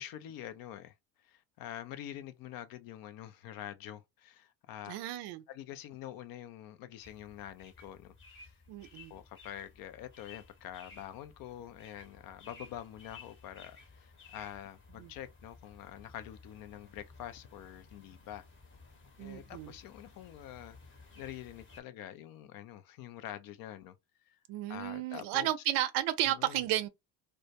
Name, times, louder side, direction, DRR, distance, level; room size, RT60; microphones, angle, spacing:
voice 1, 0.0-4.9 5.5-8.1 8.4-8.5 9.1-18.5 19.2-20.8 21.1-24.0 24.2-24.4 24.7-25.5 26.2-26.6, left 11 dB, 45° left, 0.4 m, -46 dB
voice 2, 4.9-5.4 8.7-9.1 15.0-15.1 19.2-19.7 24.5-26.9, right 13 dB, 60° right, 0.5 m, -33 dB
sound 1, 7.0-21.8, left 4 dB, 25° left, 0.8 m, -56 dB
2.2 x 2.1 x 2.7 m
hypercardioid pair, 75°, 49 cm